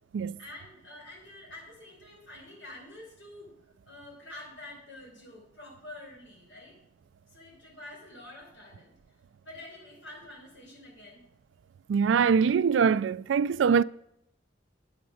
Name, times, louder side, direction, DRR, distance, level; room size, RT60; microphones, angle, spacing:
voice 1, 0.4-3.5 3.8-6.7 7.3-8.9 9.4-11.2, left 1 dB, 80° left, 5.0 m, -47 dB
voice 2, 11.9-13.8, right 6 dB, 90° right, 0.3 m, -23 dB
9.2 x 8.0 x 6.3 m
head